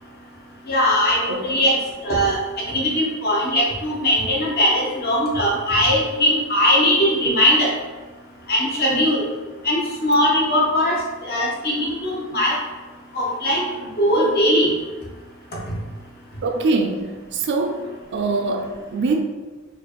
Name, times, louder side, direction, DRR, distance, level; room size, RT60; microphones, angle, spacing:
voice 1, 0.7-1.8 2.0-7.7 8.5-9.2 9.6-12.6 13.1-13.7 14.0-14.7, equal, 45° left, -3 dB, 0.9 m, -20 dB
voice 2, 16.4-19.2, right 3 dB, 50° right, 4 dB, 0.4 m, -23 dB
4.3 x 2.5 x 3.0 m, 1.3 s
head